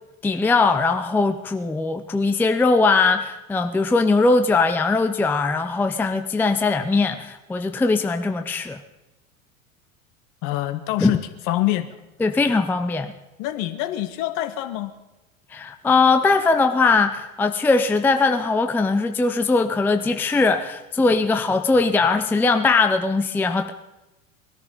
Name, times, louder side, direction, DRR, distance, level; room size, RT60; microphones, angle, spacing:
voice 1, 0.2-8.8 11.0-11.1 12.2-13.1 15.5-23.7, left 3 dB, 5° left, 8 dB, 0.6 m, -20 dB
voice 2, 10.4-11.2 11.5-12.0 13.4-14.9, left 15 dB, 50° left, 11 dB, 1.4 m, -25 dB
20.0 x 13.5 x 5.3 m, 1.0 s
hypercardioid pair, 90°, 42 cm